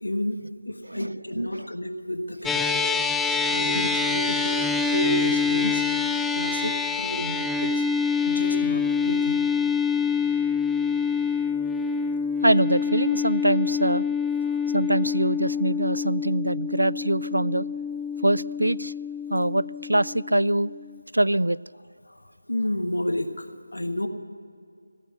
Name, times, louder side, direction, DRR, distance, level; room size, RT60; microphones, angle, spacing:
voice 1, 0.0-2.9 3.5-5.9 6.3-7.8 8.3-9.4 14.4-14.6 22.1-22.2 22.5-24.1, left 1 dB, 70° left, 7 dB, 1.3 m, -31 dB
voice 2, 0.8-1.7 12.4-14.1 14.7-17.7 18.2-18.9 19.3-20.7 21.1-21.6, right 1 dB, 75° right, 21 dB, 0.3 m, -24 dB
sound 1, 2.4-21.0, left 5 dB, 5° left, 0.4 m, -26 dB
16.0 x 9.2 x 9.7 m, 2.4 s
figure-of-eight pair, 160°, 0 cm